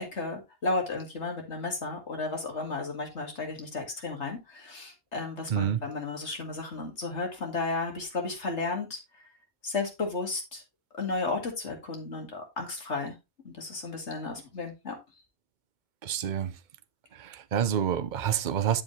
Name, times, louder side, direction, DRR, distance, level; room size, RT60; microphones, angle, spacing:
voice 1, 0.0-9.2 9.6-10.6 11.0-13.1 13.4-15.0, left 3 dB, 65° left, 2.4 m, -33 dB
voice 2, 5.5-5.8 16.0-16.5 17.2-18.8, right 9 dB, 45° right, 0.8 m, -28 dB
11.0 x 5.2 x 3.2 m
omnidirectional pair, 1.3 m